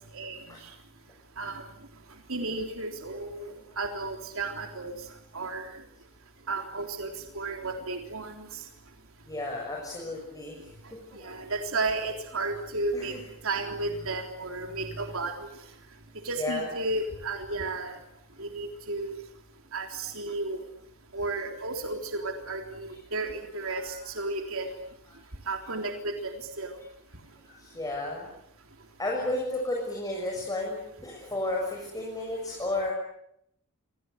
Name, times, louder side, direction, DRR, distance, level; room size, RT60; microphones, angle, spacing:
voice 1, 0.1-0.7 1.4-1.6 2.3-5.0 5.3-5.7 6.5-8.6 11.1-13.2 13.4-15.5 16.2-18.0 18.4-19.2 19.7-20.6 21.1-24.7 25.5-26.8, right 3 dB, 65° right, 4 dB, 3.7 m, -33 dB
voice 2, 9.3-11.5 12.9-13.2 16.4-16.7 23.7-24.1 27.4-28.3 29.0-32.9, left 2 dB, 15° left, -1 dB, 7.0 m, -33 dB
28.0 x 26.0 x 8.2 m, 0.74 s
head